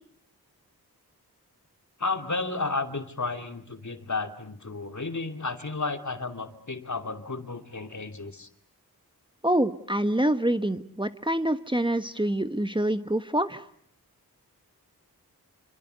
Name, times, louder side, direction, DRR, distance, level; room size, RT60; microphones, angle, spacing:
voice 1, 2.0-8.5, left 3 dB, 45° left, 7 dB, 2.8 m, -32 dB
voice 2, 9.4-13.6, right 1 dB, 10° right, 10 dB, 1.5 m, -26 dB
26.5 x 25.0 x 8.1 m, 0.65 s
cardioid pair, 40°, 38 cm